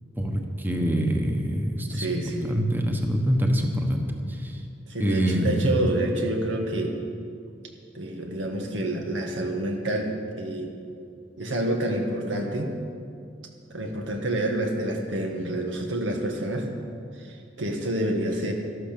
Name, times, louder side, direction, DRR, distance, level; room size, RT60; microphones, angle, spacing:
voice 1, 0.2-2.2 2.4-4.6 5.0-5.8, equal, 10° right, 2 dB, 1.2 m, -25 dB
voice 2, 1.9-2.5 4.9-6.9 7.9-10.7 11.4-12.7 13.7-16.7 17.2-18.5, right 1 dB, 85° right, 2 dB, 1.9 m, -28 dB
13.0 x 12.0 x 6.9 m, 2.5 s
head